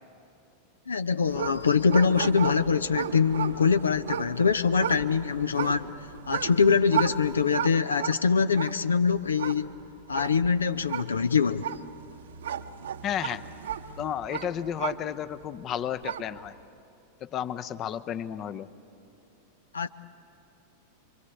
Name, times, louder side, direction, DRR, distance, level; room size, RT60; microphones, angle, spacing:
voice 1, 0.9-5.9 6.3-9.7 10.1-11.7 19.7-19.9, left 5 dB, 75° left, 13 dB, 0.6 m, -24 dB
sound 1, 1.3-15.4 15.8-16.5, right 9 dB, 65° right, 0.9 m, -35 dB
voice 2, 13.0-13.4 14.0-16.5 17.2-18.7, left 9 dB, 30° left, 14 dB, 0.8 m, -32 dB
27.0 x 24.0 x 8.3 m, 2.7 s
figure-of-eight pair, 90°, 0 cm